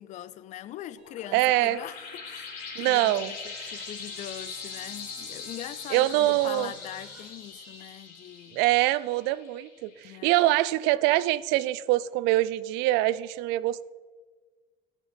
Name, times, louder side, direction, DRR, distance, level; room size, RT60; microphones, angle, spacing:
voice 1, 0.0-8.6 10.0-10.4, left 12 dB, 45° left, 0.4 m, -42 dB
sound 1, 0.9-10.1, left 5 dB, 75° left, 3.5 m, -41 dB
sound 2, 1.0-1.1 1.5-1.7 2.6-2.7 3.6-3.8 4.3-4.4 5.4-8.0, right 1 dB, 5° right, 2.5 m, -53 dB
voice 2, 1.3-1.8 2.8-3.8 5.9-6.7 8.5-13.8, right 16 dB, 85° right, 0.5 m, -24 dB
16.0 x 6.3 x 5.2 m
cardioid pair, 160°, 17 cm